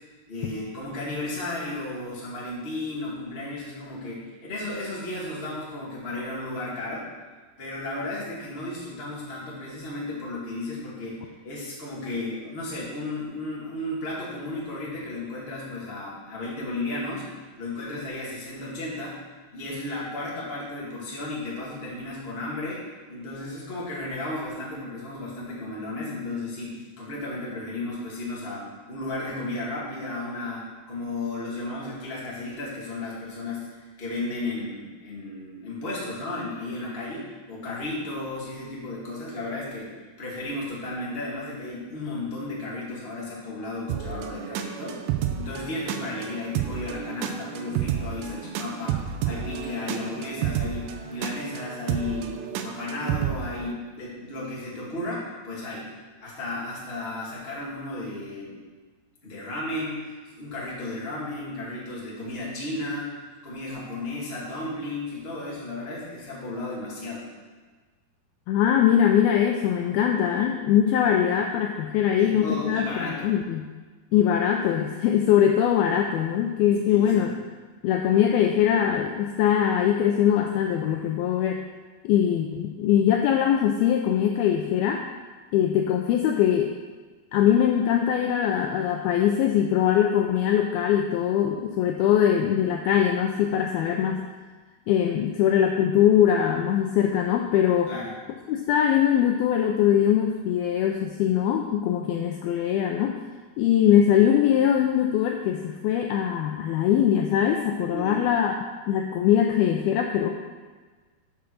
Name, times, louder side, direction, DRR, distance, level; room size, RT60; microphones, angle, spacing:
voice 1, 0.3-7.1 7.6-17.3 17.6-19.2 19.5-45.0 45.3-52.3 52.6-55.9 56.2-58.6 59.2-67.3 72.2-73.3 76.9-77.3 97.9-98.1 107.9-108.2, left 2 dB, 20° left, -6 dB, 1.6 m, -34 dB
sound 1, 43.9-53.7, right 9 dB, 85° right, 2.9 m, -31 dB
voice 2, 68.5-73.7 74.1-77.3 77.8-81.6 82.0-85.0 85.5-86.7 87.3-94.2 94.9-97.9 98.5-103.2 103.6-110.3, left 9 dB, 90° left, 3 dB, 2.1 m, -22 dB
7.7 x 7.0 x 6.4 m, 1.4 s
omnidirectional pair, 5.0 m